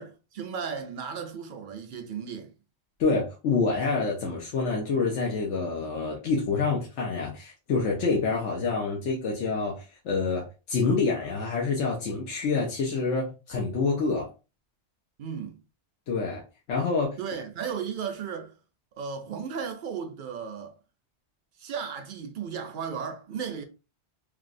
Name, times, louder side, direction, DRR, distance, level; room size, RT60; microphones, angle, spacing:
voice 1, 0.0-2.5 15.2-15.6 17.2-18.5 19.0-20.8 21.6-23.6, right 6 dB, 60° right, 0.6 m, -35 dB
voice 2, 3.0-14.3 16.1-16.4 16.7-17.2, left 4 dB, 80° left, 1.1 m, -27 dB
3.3 x 2.4 x 2.5 m
omnidirectional pair, 1.2 m